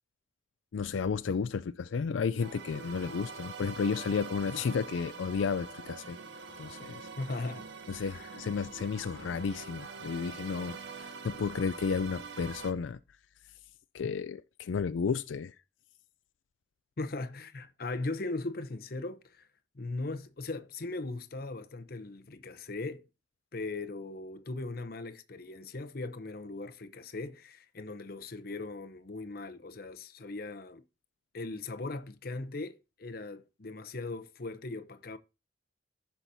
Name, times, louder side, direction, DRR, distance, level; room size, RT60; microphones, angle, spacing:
voice 1, 0.7-6.2 6.6-7.1 7.9-13.0 13.9-15.5, left 5 dB, 85° left, 0.4 m, -32 dB
sound 1, 2.4-12.7, right 4 dB, 70° right, 0.9 m, -44 dB
voice 2, 7.2-7.7 7.9-8.3 17.0-19.5 19.7-23.1 23.5-30.8 31.3-35.2, left 2 dB, 50° left, 0.7 m, -39 dB
14.5 x 5.8 x 2.7 m
head